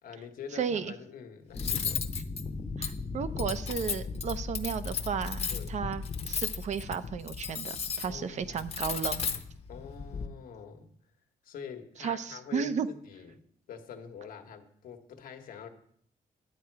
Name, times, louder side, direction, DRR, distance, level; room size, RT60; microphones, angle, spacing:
voice 1, 0.0-2.1 5.5-5.7 8.1-8.6 9.7-10.9 11.4-13.4 13.7-15.7, left 7 dB, 80° left, 5 dB, 1.4 m, -45 dB
voice 2, 0.5-0.9 2.8-9.2 12.0-12.9, right 7 dB, 55° right, 12 dB, 0.7 m, -34 dB
Cutlery silverware, 1.5-10.3, left 6 dB, 45° left, 0.9 m, -36 dB
sound 1, 1.5-7.3, left 3 dB, 20° left, 0.7 m, -40 dB
11.5 x 8.6 x 4.7 m, 0.66 s
cardioid pair, 125°, 14 cm